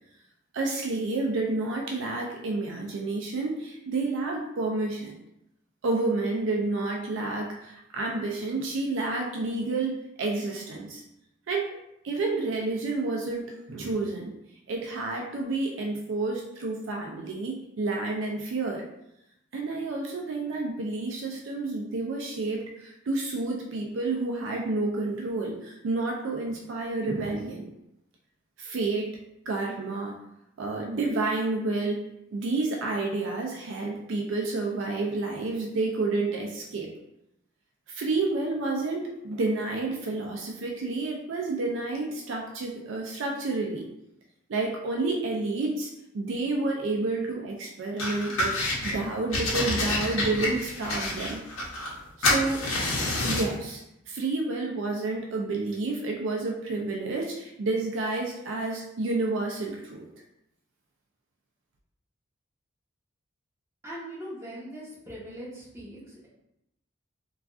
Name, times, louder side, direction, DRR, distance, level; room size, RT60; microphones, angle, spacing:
voice 1, 0.5-5.1 5.8-11.0 11.5-11.8 12.0-14.3 14.7-18.8 19.5-27.6 28.6-29.2 29.5-30.1 30.6-32.0 32.3-36.9 37.9-43.8 44.5-51.4 52.2-52.6 53.2-53.8 54.1-60.1, right 3 dB, 65° right, 0 dB, 0.4 m, -30 dB
sound 1, 48.0-48.9 49.3-52.0 52.2-53.5, left 1 dB, 90° left, 0.8 m, -28 dB
voice 2, 63.8-66.3, equal, 15° right, -9 dB, 1.0 m, -41 dB
3.5 x 2.3 x 2.3 m, 0.85 s
head